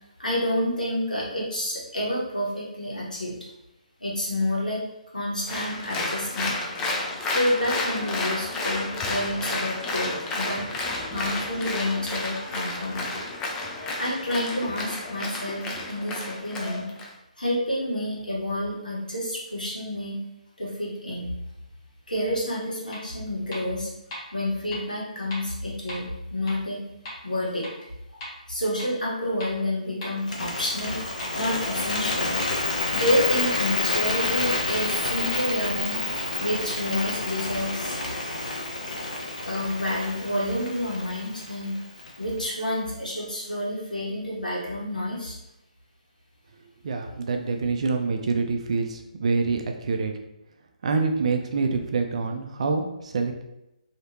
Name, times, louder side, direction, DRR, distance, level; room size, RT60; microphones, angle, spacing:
voice 1, 0.2-3.5 4.0-4.8 5.1-6.6 7.2-10.6 11.1-13.2 14.0-16.9 17.4-20.2 20.6-21.3 22.1-23.9 24.3-26.8 27.2-27.6 28.5-31.0 31.3-32.4 32.9-38.0 39.4-41.8 42.2-45.4, left 1 dB, 85° left, -5 dB, 1.3 m, -29 dB
Applause, 5.5-17.1, left 2 dB, 15° left, 0.4 m, -31 dB
sound 1, 22.9-23.0 23.5-23.6 24.1-24.2 24.7-24.8 25.3-25.4 25.9-26.0 26.5-26.6 27.1-27.2 27.6-27.7 28.2-28.3 28.8-28.9 29.4-29.5 30.0-30.1 30.6-30.7 31.2-31.3 31.8-31.9 32.4-32.5 33.0-33.1 33.6-33.7 34.1-34.2 34.7-34.8 35.3-35.4, left 1 dB, 35° left, 1.2 m, -37 dB
Bird, 30.2-42.4, left 3 dB, 65° left, 0.9 m, -29 dB
voice 2, 46.8-50.1 50.8-53.4, right 4 dB, 50° right, 5 dB, 0.5 m, -26 dB
3.2 x 2.8 x 2.8 m, 0.88 s
figure-of-eight pair, 140°, 4 cm